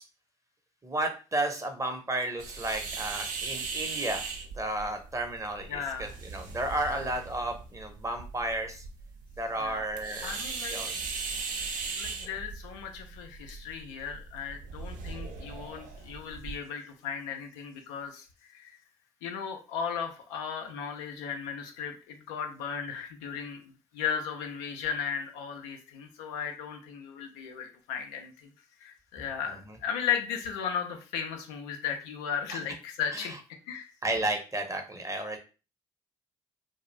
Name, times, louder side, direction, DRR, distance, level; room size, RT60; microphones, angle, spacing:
voice 1, 0.8-4.2 4.6-8.8 9.4-10.3 10.7-11.0 11.3-11.4 29.5-29.8 33.1-33.3 34.0-35.4, right 2 dB, 20° right, 4 dB, 0.7 m, -33 dB
sound 1, 2.4-16.6, right 4 dB, 60° right, 0.5 m, -39 dB
voice 2, 5.7-6.2 6.8-7.0 9.6-9.8 10.2-10.8 12.0-18.8 19.2-23.6 23.9-28.5 28.8-33.3 33.7-33.9, left 7 dB, 80° left, 4 dB, 0.4 m, -36 dB
2.3 x 2.0 x 3.1 m, 0.33 s
hypercardioid pair, 45°, 15 cm